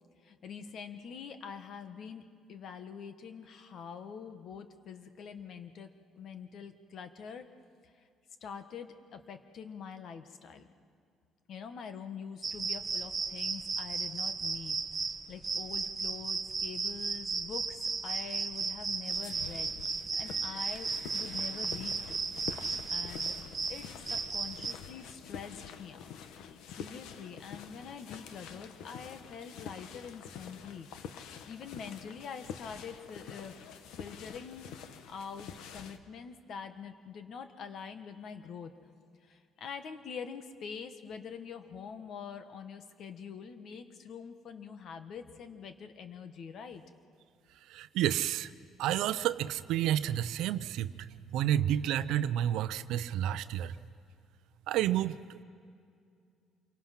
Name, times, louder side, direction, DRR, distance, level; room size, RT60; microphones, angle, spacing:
voice 1, 0.2-5.9 6.1-7.5 7.8-8.1 8.4-10.7 11.5-19.7 20.2-22.3 22.5-22.6 22.9-23.4 23.7-26.2 26.7-30.9 31.4-33.6 34.0-34.7 35.1-38.7 39.2-46.8, left 6 dB, 55° left, 8 dB, 1.4 m, -45 dB
sound 1, 12.4-24.7, right 4 dB, 25° right, 0.9 m, -35 dB
sound 2, 19.0-36.0, left 7 dB, 90° left, 1.1 m, -47 dB
voice 2, 47.7-48.5 48.8-53.8 54.7-55.4, right 11 dB, 85° right, 14 dB, 0.6 m, -30 dB
27.5 x 23.5 x 5.9 m, 2.3 s
cardioid pair, 140°, 0 cm